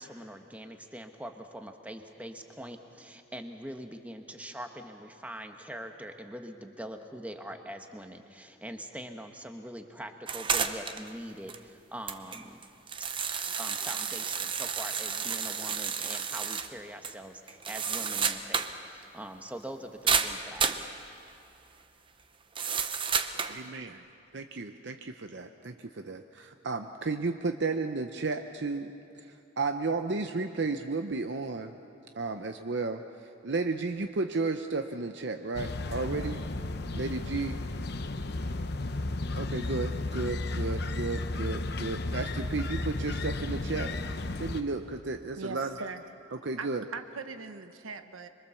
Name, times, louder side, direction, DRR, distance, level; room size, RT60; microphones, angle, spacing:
voice 1, 0.0-12.7 13.6-20.8, right 1 dB, 5° right, 5 dB, 1.1 m, -43 dB
sound 1, 10.3-11.1 11.5-11.6 12.1-16.7 17.0-17.1 17.5-18.8 19.0-19.1 20.1-20.9 22.6-23.6, right 6 dB, 25° right, 0.8 m, -31 dB
voice 2, 23.3-24.0 24.3-28.9 29.2-31.7 32.2-36.5 36.9-37.6 39.4-43.9 44.4-45.8 46.3-46.8, right 3 dB, 55° right, 7 dB, 0.7 m, -33 dB
sound 2, 35.5-44.6, left 2 dB, 50° left, 0.9 m, -33 dB
voice 3, 45.4-46.1 46.6-48.3, right 4 dB, 90° right, 8 dB, 1.1 m, -40 dB
26.0 x 23.5 x 7.0 m, 2.6 s
head